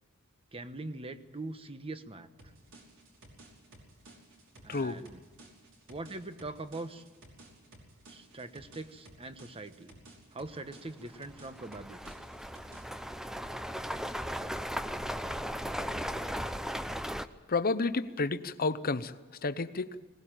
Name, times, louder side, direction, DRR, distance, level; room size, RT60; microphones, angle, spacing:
voice 1, 0.5-2.3 4.6-5.2 5.9-7.0 8.1-9.9 10.3-12.1, right 2 dB, 25° right, 10 dB, 1.1 m, -42 dB
sound 1, 2.4-13.0, right 2 dB, 60° right, 5.1 m, -55 dB
voice 2, 4.7-5.0 17.5-19.1 19.4-20.0, left 3 dB, 45° left, 12 dB, 0.8 m, -30 dB
sound 2, 10.5-10.6 11.1-17.3, equal, ahead, 0.7 m, -37 dB
20.5 x 18.5 x 9.0 m, 1.2 s
head